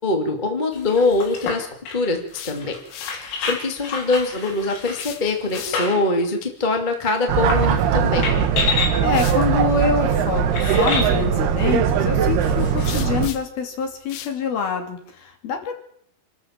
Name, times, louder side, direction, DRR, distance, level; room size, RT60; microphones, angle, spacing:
voice 1, 0.0-2.7 3.1-8.3, left 3 dB, 20° left, 3 dB, 1.2 m, -23 dB
sound 1, 0.7-6.2 6.7-6.8 7.3-7.9 8.2-9.0 9.8-9.9 10.5-11.1 12.4-12.9, left 4 dB, 85° left, 6.5 m, -29 dB
sound 2, 2.1-3.3 4.9-6.1 8.1-8.3 9.1-9.5 12.8-13.6 14.1-14.4, left 11 dB, 70° left, 2.5 m, -37 dB
sound 3, 7.3-13.3, right 7 dB, 65° right, 2.8 m, -20 dB
voice 2, 9.0-15.7, left 5 dB, 55° left, 4 dB, 4.2 m, -26 dB
27.5 x 13.0 x 7.4 m, 0.65 s
omnidirectional pair, 5.7 m